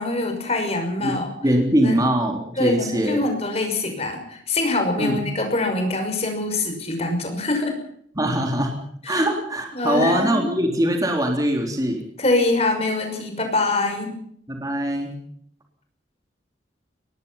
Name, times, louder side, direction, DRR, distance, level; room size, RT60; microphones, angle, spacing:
voice 1, 0.0-1.3 1.8-2.0 2.6-7.8 9.0-9.2 9.7-10.5 12.2-14.1, left 2 dB, 30° left, 5 dB, 6.0 m, -24 dB
voice 2, 1.4-3.2 5.0-5.2 8.2-8.8 9.1-12.0 14.5-15.2, right 1 dB, 20° right, 3 dB, 3.6 m, -22 dB
23.5 x 20.0 x 5.7 m, 0.66 s
head